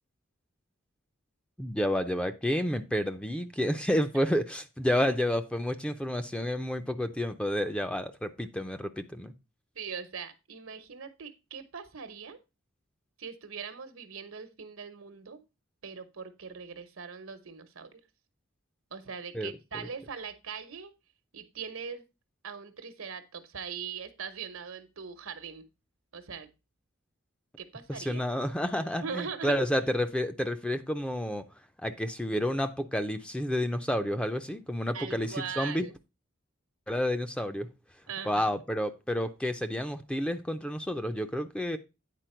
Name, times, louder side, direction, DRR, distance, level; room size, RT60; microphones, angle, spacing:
voice 1, 1.6-9.3 19.3-19.9 27.9-31.4 31.8-35.8 36.9-37.7 38.2-41.8, equal, 5° left, 0.5 m, -30 dB
voice 2, 9.7-12.4 13.2-15.4 15.8-18.0 18.9-20.9 21.3-22.0 22.4-25.6 26.1-26.5 27.6-28.2 29.0-29.5 34.9-35.9 38.1-38.5, right 6 dB, 80° right, 1.0 m, -41 dB
9.2 x 4.4 x 4.4 m
head